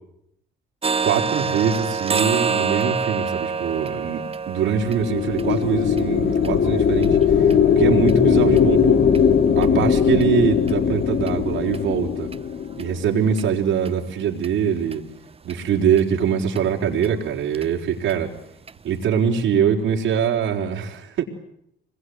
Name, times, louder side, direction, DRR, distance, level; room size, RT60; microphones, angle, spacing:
sound 1, 0.8-8.6 9.1-9.2 9.6-9.8 10.2-10.3 10.7-10.8 11.3-11.4 11.7-11.8 12.3-12.4 12.8-12.9 13.4-13.5 13.9-14.0 14.4-14.5 14.9-15.0 15.5-15.6 16.0-16.1 16.6-16.7 17.0-17.1 17.5-17.7 18.1-18.2 18.7-18.8, right 5 dB, 30° right, 1.0 m, -27 dB
voice 1, 1.0-7.2 7.8-9.0 9.6-12.3 12.7-15.0 15.4-18.3 18.8-21.2, right 7 dB, 80° right, -2 dB, 4.4 m, -23 dB
sound 2, 4.8-13.4, left 7 dB, 50° left, 1.7 m, -19 dB
26.0 x 21.5 x 9.6 m, 0.75 s
cardioid pair, 90°, 20 cm